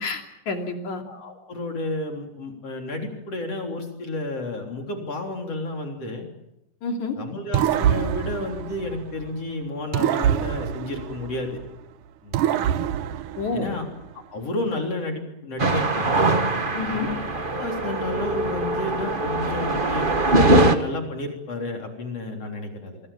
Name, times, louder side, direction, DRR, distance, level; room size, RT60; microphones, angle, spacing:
voice 1, 0.0-1.0 6.8-7.1 13.4-13.8 16.7-17.1, left 4 dB, 65° left, 3 dB, 4.2 m, -29 dB
voice 2, 1.0-6.3 7.2-11.6 12.2-12.4 13.5-13.9 14.3-16.2 16.9-17.2 17.5-23.0, left 2 dB, 50° left, 2 dB, 4.6 m, -31 dB
sound 1, 7.5-9.4 9.9-11.8 12.3-14.1, right 10 dB, 80° right, 2.6 m, -25 dB
sound 2, 15.6-20.8, right 2 dB, 55° right, 0.5 m, -22 dB
27.5 x 22.5 x 7.3 m, 0.86 s
omnidirectional pair, 3.7 m